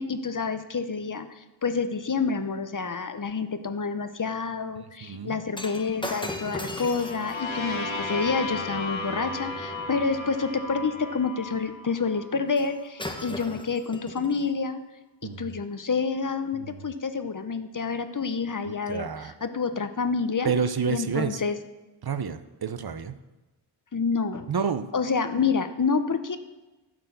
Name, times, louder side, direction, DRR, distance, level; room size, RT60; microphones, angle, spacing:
voice 1, 0.0-14.8 15.4-19.1 19.4-20.5 20.9-21.6 23.9-24.5 24.9-26.4, left 5 dB, 45° left, 10 dB, 0.6 m, -28 dB
voice 2, 5.0-5.3 13.3-13.4 15.2-15.5 16.5-16.9 18.6-19.3 20.4-21.4 22.0-23.2 24.5-24.9, right 6 dB, 55° right, 11 dB, 0.6 m, -29 dB
Shatter, 5.5-9.9 12.6-12.7 13.0-14.5 15.2-15.4, left 1 dB, 10° left, 0.9 m, -38 dB
sound 1, 6.6-12.5, left 2 dB, 80° left, 1.1 m, -34 dB
11.0 x 4.5 x 6.7 m, 1.1 s
wide cardioid pair, 55°, 46 cm